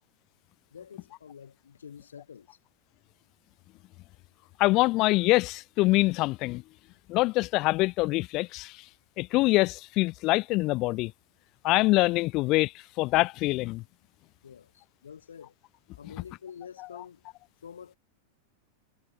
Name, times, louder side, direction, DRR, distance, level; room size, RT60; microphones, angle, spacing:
voice 1, 0.7-2.6 14.4-15.5 16.0-17.2 17.6-18.0, left 7 dB, 70° left, 1.9 m, -47 dB
voice 2, 4.6-6.6 7.1-8.7 9.2-11.1 11.6-12.7 13.0-13.8, left 21 dB, 40° left, 0.3 m, -24 dB
figure-of-eight pair, 90°, 0 cm